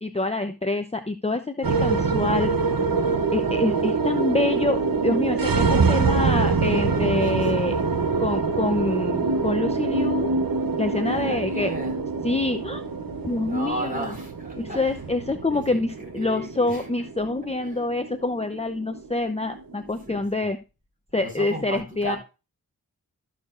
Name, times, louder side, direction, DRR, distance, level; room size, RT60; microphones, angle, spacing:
voice 1, 0.0-2.5 3.3-7.8 8.2-10.3 10.8-11.7 12.2-12.8 13.2-14.1 14.6-20.6 21.1-22.2, left 2 dB, 15° left, 0.7 m, -26 dB
sound 1, 1.6-20.0, right 4 dB, 70° right, 0.9 m, -25 dB
voice 2, 6.9-7.8 11.0-12.0 13.5-14.9 15.5-16.9 17.7-17.8 20.1-20.5 21.1-22.2, right 1 dB, 25° right, 5.5 m, -35 dB
14.0 x 6.6 x 2.5 m
wide cardioid pair, 45°, 36 cm